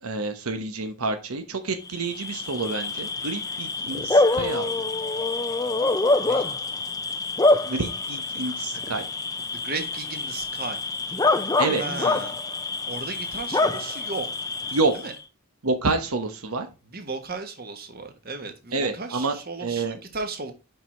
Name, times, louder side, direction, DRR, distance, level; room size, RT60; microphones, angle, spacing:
voice 1, 0.0-4.7 7.7-9.1 11.6-11.8 14.7-14.9 15.6-16.7 18.7-19.4 19.6-20.0, right 3 dB, 85° right, 1.0 m, -28 dB
Bark / Cricket, 1.9-15.2, left 2 dB, 15° left, 0.4 m, -26 dB
voice 2, 9.5-10.8 11.8-12.4 12.8-14.3 14.9-15.1 16.9-20.5, right 3 dB, 45° right, 1.4 m, -35 dB
5.6 x 5.6 x 4.4 m
head